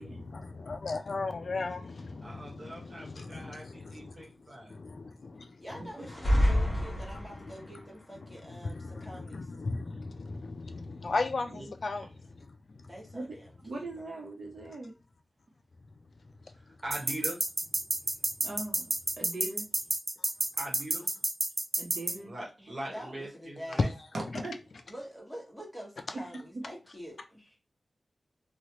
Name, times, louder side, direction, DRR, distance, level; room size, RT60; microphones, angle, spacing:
voice 1, 0.0-4.3 4.7-5.8 8.6-12.1 12.4-12.9 23.8-23.9 24.3-24.4, left 3 dB, 60° left, 0.3 m, -36 dB
voice 2, 2.2-4.8 11.6-11.7 16.6-17.5 20.6-21.1 22.2-23.9, right 1 dB, 40° right, 1.3 m, -42 dB
voice 3, 5.6-9.5 12.9-14.2 17.0-17.3 22.1-22.2 22.6-23.9 24.9-27.6, equal, 5° left, 1.4 m, -46 dB
sound 1, 6.0-7.7, equal, 30° left, 1.2 m, -27 dB
voice 4, 13.6-14.9 18.4-18.9 19.2-19.7 21.8-22.3 24.1-24.5, right 2 dB, 55° right, 0.9 m, -40 dB
sound 2, 16.9-22.2, right 2 dB, 25° right, 0.3 m, -30 dB
3.2 x 2.3 x 2.9 m
wide cardioid pair, 105°, 0 cm